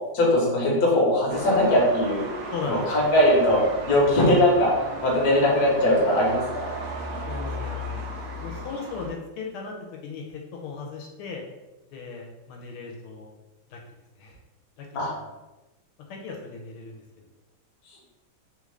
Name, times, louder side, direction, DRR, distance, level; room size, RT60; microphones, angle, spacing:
voice 1, 0.1-2.2 2.7-4.7 5.0-6.7 14.9-15.1 17.9-18.0, left 1 dB, 55° left, -3 dB, 1.3 m, -20 dB
sound 1, 1.3-9.1, right 1 dB, 85° right, 0.8 m, -35 dB
voice 2, 2.5-3.0 4.2-4.4 7.3-8.0 8.4-9.8 10.0-11.4 11.9-13.3 13.7-13.8 14.2-14.4 14.8-14.9 16.1-17.2, left 4 dB, 85° left, 0 dB, 1.5 m, -37 dB
3.5 x 2.4 x 3.1 m, 1.1 s
omnidirectional pair, 2.3 m